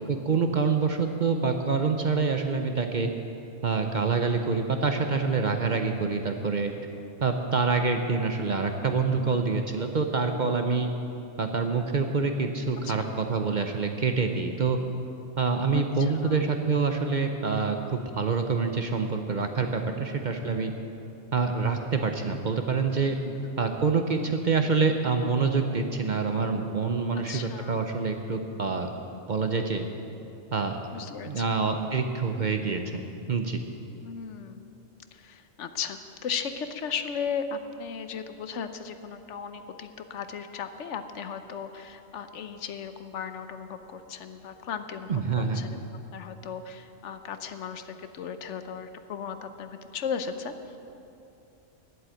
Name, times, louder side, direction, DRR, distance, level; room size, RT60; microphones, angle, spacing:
voice 1, 0.1-3.1 3.6-6.7 7.2-10.9 11.4-14.8 15.4-20.7 21.3-23.2 23.6-28.9 29.3-29.8 30.5-30.8 31.3-33.0 33.3-33.6 45.1-45.6, right 4 dB, 45° right, 5 dB, 0.7 m, -26 dB
voice 2, 9.1-9.4 12.8-13.1 15.7-16.5 19.9-20.6 23.2-23.4 27.1-27.8 30.9-31.6 34.0-34.8 35.1-50.5, left 6 dB, 70° left, 9 dB, 1.0 m, -36 dB
11.0 x 7.8 x 8.9 m, 2.7 s
omnidirectional pair, 1.3 m